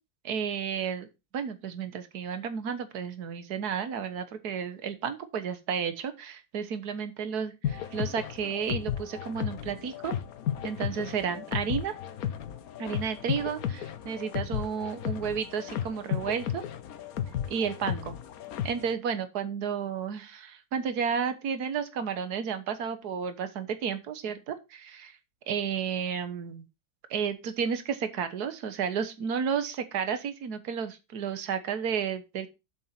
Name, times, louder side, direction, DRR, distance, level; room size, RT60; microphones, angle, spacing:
voice 1, 0.2-1.1 1.3-10.1 10.6-11.9 12.8-16.6 17.5-18.2 18.6-25.2 25.5-26.6 27.1-32.5, right 7 dB, 75° right, 10 dB, 1.7 m, -32 dB
sound 1, 7.6-18.9, left 9 dB, 70° left, 1.3 m, -34 dB
8.0 x 7.3 x 4.4 m, 0.26 s
omnidirectional pair, 1.7 m